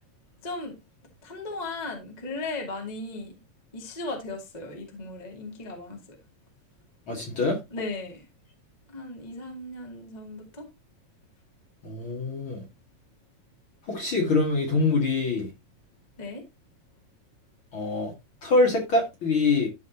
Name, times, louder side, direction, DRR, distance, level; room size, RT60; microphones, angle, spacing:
voice 1, 0.4-0.8 1.2-3.4 3.7-6.0 7.7-8.2 8.9-10.7 16.2-16.4, left 2 dB, 15° left, 1.7 m, -36 dB
voice 2, 7.1-7.6 11.8-12.7 13.9-15.5 17.7-18.1 18.4-19.7, left 3 dB, 40° left, 2.4 m, -24 dB
13.5 x 5.2 x 2.8 m
omnidirectional pair, 4.1 m